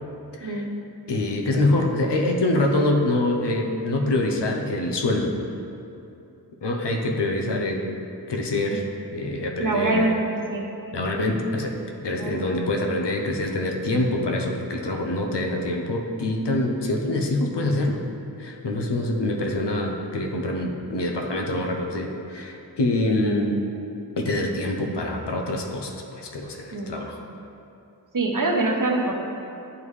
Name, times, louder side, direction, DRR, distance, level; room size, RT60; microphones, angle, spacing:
voice 1, 1.1-5.3 6.6-7.8 8.3-8.8 9.1-10.1 10.9-11.7 12.0-18.0 18.4-23.5 24.2-27.2, left 1 dB, 85° left, 2 dB, 0.7 m, -25 dB
voice 2, 9.6-10.7 12.2-12.4 23.2-23.4 26.7-27.0 28.1-29.1, right 2 dB, 50° right, 0 dB, 0.9 m, -24 dB
9.7 x 3.6 x 3.2 m, 2.7 s
wide cardioid pair, 45°, 40 cm